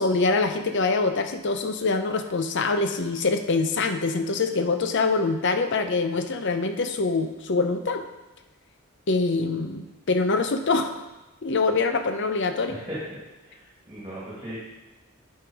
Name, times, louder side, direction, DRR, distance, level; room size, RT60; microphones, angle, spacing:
voice 1, 0.0-8.0 9.1-11.0 11.4-12.8, left 3 dB, 55° left, 7 dB, 0.7 m, -24 dB
voice 2, 12.7-13.2 13.4-14.6, equal, 20° right, -8 dB, 2.1 m, -37 dB
8.9 x 5.7 x 4.7 m, 1.1 s
head